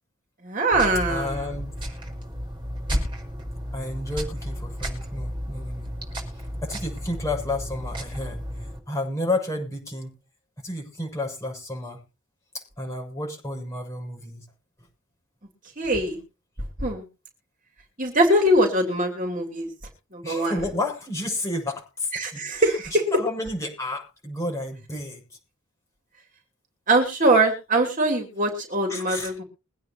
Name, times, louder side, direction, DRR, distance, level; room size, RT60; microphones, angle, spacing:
voice 1, 0.4-1.5 15.8-16.2 16.8-17.0 18.0-19.7 20.1-20.6 22.1-23.0 26.9-29.4, right 1 dB, 40° right, 2 dB, 3.0 m, -22 dB
sound 1, 0.7-8.8, equal, 20° right, 5.3 m, -33 dB
voice 2, 1.1-1.7 3.7-5.9 6.6-8.4 8.9-10.1 10.6-12.0 12.5-14.5 20.2-25.2 28.9-29.3, left 2 dB, 15° left, 0 dB, 6.9 m, -31 dB
22.5 x 9.3 x 3.0 m, 0.30 s
head